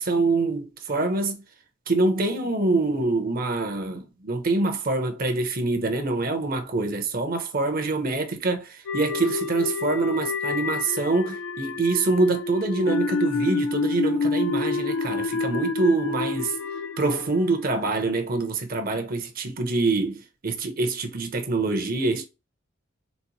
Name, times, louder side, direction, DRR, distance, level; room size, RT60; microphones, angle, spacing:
voice 1, 0.0-1.4 1.9-16.6 17.0-22.2, right 3 dB, 45° right, 0.8 m, -25 dB
sound 1, 8.9-18.1, left 4 dB, 75° left, 0.4 m, -28 dB
4.1 x 2.1 x 2.9 m
head